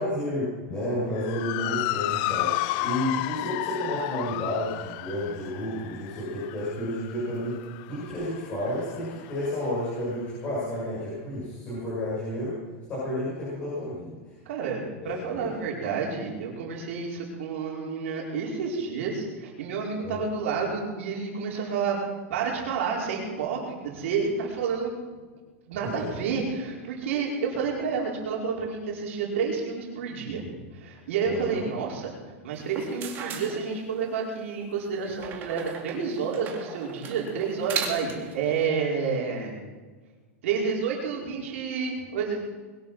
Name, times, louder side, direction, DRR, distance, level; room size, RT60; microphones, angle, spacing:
voice 1, 0.0-2.5 2.8-7.6 7.9-12.6 12.9-14.2 15.0-15.5 20.0-20.2 25.8-26.1 31.2-31.6, left 1 dB, 20° left, -9 dB, 6.4 m, -31 dB
Motor vehicle (road) / Siren, 1.2-9.7, left 17 dB, 40° left, 0.5 m, -32 dB
voice 2, 14.4-22.0 22.3-24.9 25.7-32.1 32.4-39.5 40.4-42.4, right 5 dB, 65° right, -3 dB, 4.8 m, -30 dB
sound 1, 32.6-34.2 35.2-38.3, right 7 dB, 25° right, 2.2 m, -36 dB
21.5 x 9.6 x 6.5 m, 1.4 s
supercardioid pair, 165°, 7 cm